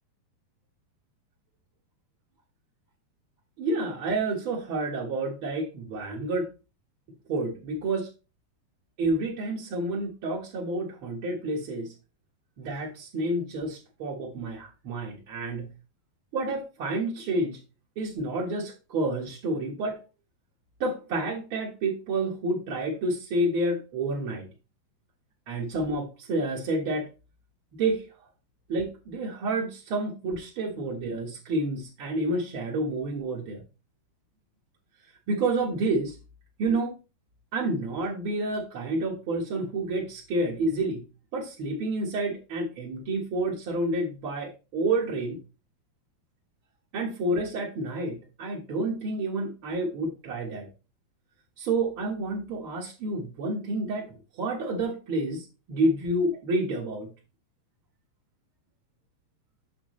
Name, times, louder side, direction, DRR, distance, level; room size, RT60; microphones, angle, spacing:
voice 1, 3.6-6.5 7.3-8.1 9.0-11.9 12.6-15.7 16.3-17.6 17.9-20.0 20.8-24.5 25.5-27.1 27.8-28.1 28.7-33.6 35.3-36.2 36.6-37.0 37.5-41.1 41.3-45.4 46.9-50.7 51.6-57.1, right 2 dB, 60° right, -4 dB, 1.4 m, -29 dB
8.4 x 6.4 x 3.1 m, 0.31 s
omnidirectional pair, 4.5 m